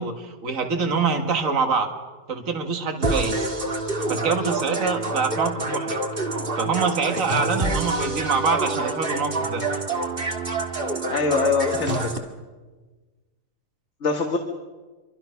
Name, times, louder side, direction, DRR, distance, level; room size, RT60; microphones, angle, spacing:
voice 1, 0.0-1.9 2.3-3.5 4.1-6.0 6.6-9.6, right 4 dB, 55° right, 4 dB, 2.3 m, -25 dB
sound 1, 3.0-12.2, right 2 dB, 35° right, 2.0 m, -27 dB
voice 2, 11.1-12.1 14.0-14.4, left 4 dB, 45° left, 4 dB, 1.9 m, -23 dB
26.5 x 24.5 x 5.8 m, 1.3 s
omnidirectional pair, 1.7 m